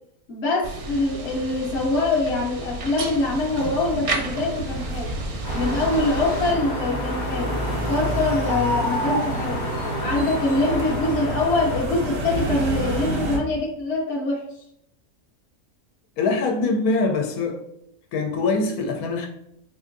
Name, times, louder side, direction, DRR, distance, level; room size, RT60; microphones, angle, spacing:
voice 1, 0.3-5.2 5.5-9.6 10.0-14.5, left 2 dB, 60° left, 0.8 m, -24 dB
sound 1, 0.6-6.5, right 2 dB, 55° right, 0.7 m, -31 dB
sound 2, 3.0-13.4, right 1 dB, 80° right, 1.4 m, -30 dB
sound 3, 5.4-11.9, equal, 25° left, 0.5 m, -30 dB
voice 2, 16.2-17.6 18.1-19.3, left 3 dB, 90° left, 1.1 m, -23 dB
4.4 x 2.5 x 2.5 m
omnidirectional pair, 1.5 m